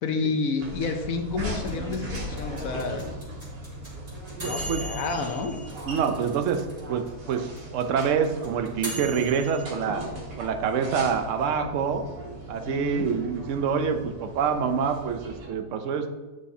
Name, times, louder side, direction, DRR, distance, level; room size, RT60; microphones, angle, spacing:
voice 1, 0.0-3.1 4.4-5.6 12.7-13.1, left 4 dB, 60° left, 5 dB, 1.0 m, -30 dB
sound 1, 0.6-15.5, right 1 dB, 80° right, 2.3 m, -38 dB
sound 2, 1.7-6.8 7.1-7.2 7.3-9.6, equal, 30° right, 2.8 m, -38 dB
voice 2, 4.4-4.9 5.8-10.0 10.4-12.0 12.5-16.1, right 6 dB, 60° right, 6 dB, 0.8 m, -26 dB
8.9 x 6.4 x 2.8 m, 1.3 s
omnidirectional pair, 1.9 m